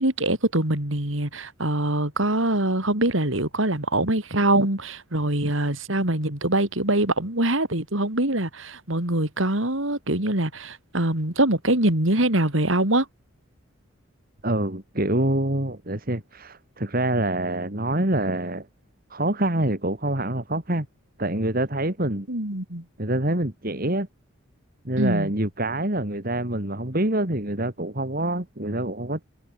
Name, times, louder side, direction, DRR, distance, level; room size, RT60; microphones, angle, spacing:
voice 1, 0.0-13.1 22.3-22.8 25.0-25.3, right 1 dB, 70° right, 4.4 m, -23 dB
voice 2, 14.4-18.7 19.1-20.9 21.2-22.3 23.0-24.1 24.8-29.2, right 1 dB, 45° right, 3.0 m, -26 dB
head